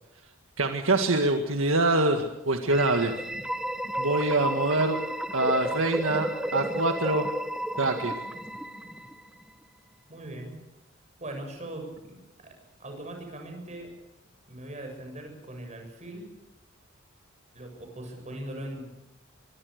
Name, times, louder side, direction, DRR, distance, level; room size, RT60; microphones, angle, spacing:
voice 1, 0.6-3.2 4.0-5.0 5.3-7.3 7.8-8.1, right 2 dB, 70° right, 4 dB, 1.9 m, -25 dB
sound 1, 2.7-9.4, equal, 5° right, 1.3 m, -33 dB
voice 2, 10.1-10.6 11.2-12.1 12.4-12.5 12.8-13.9 14.5-16.3 17.5-18.9, right 1 dB, 35° right, 3 dB, 7.5 m, -40 dB
25.0 x 24.0 x 6.7 m, 0.90 s
head